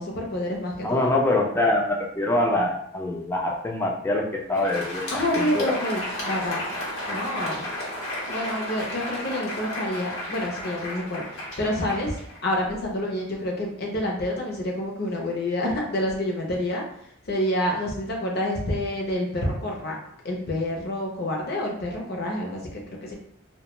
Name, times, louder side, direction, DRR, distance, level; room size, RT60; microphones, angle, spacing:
voice 1, 0.0-1.2 5.1-6.6 7.1-7.7 8.3-12.2 12.4-16.8 17.3-20.0 20.2-23.1, left 1 dB, 50° left, 0 dB, 0.6 m, -28 dB
voice 2, 0.8-5.0 5.3-5.7, left 2 dB, 10° left, 0 dB, 0.3 m, -24 dB
Crowd, 4.4-12.9, left 1 dB, 85° left, 1.0 m, -33 dB
2.3 x 2.1 x 3.0 m, 0.68 s
head